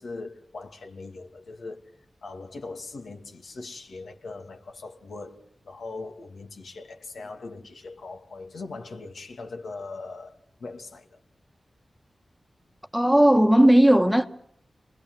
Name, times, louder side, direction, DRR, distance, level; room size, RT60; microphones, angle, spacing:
voice 1, 0.0-1.9 2.2-11.2, left 3 dB, 85° left, 2.6 m, -40 dB
voice 2, 12.9-14.3, right 1 dB, ahead, 1.4 m, -17 dB
30.0 x 20.5 x 7.9 m
wide cardioid pair, 130°, 0 cm